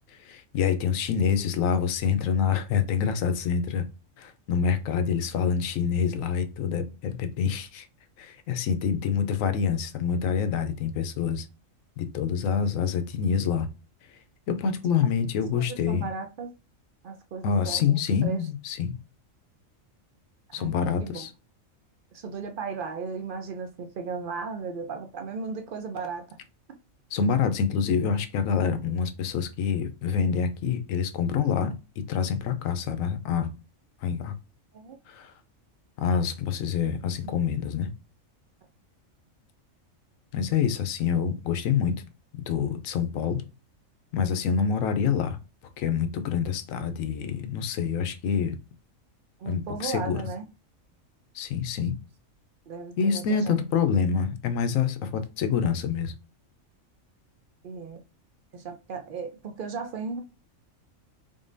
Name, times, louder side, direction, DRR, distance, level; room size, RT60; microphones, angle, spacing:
voice 1, 0.1-3.8 4.2-7.9 8.2-11.5 12.0-13.7 14.5-16.0 17.4-19.0 20.5-21.3 27.1-31.7 32.1-33.5 34.0-34.3 35.1-35.3 36.0-37.9 40.3-41.9 42.5-43.4 44.1-45.4 45.8-48.6 49.5-50.2 51.3-51.9 53.0-56.1, left 7 dB, 80° left, 1.0 m, -26 dB
voice 2, 15.6-16.5 17.0-17.9 18.2-18.4 20.6-20.7 21.0-21.3 22.1-26.3 26.7-26.8 34.7-35.0 49.4-50.4 52.7-53.5 57.6-58.0 58.5-60.2, right 5 dB, 65° right, 0.5 m, -36 dB
3.7 x 3.7 x 2.6 m
omnidirectional pair, 1.4 m